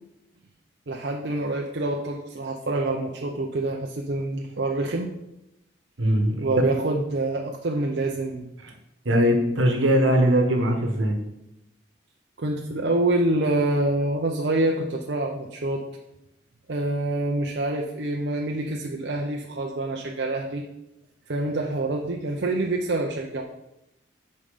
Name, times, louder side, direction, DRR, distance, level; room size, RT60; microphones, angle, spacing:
voice 1, 0.9-5.1 6.4-8.5 9.1-9.2 12.4-15.8 16.7-20.6 21.3-23.4, right 2 dB, 55° right, 1 dB, 0.6 m, -26 dB
voice 2, 6.0-6.5 9.0-11.2, equal, 75° right, 4 dB, 1.2 m, -21 dB
5.5 x 5.3 x 5.0 m, 0.86 s
head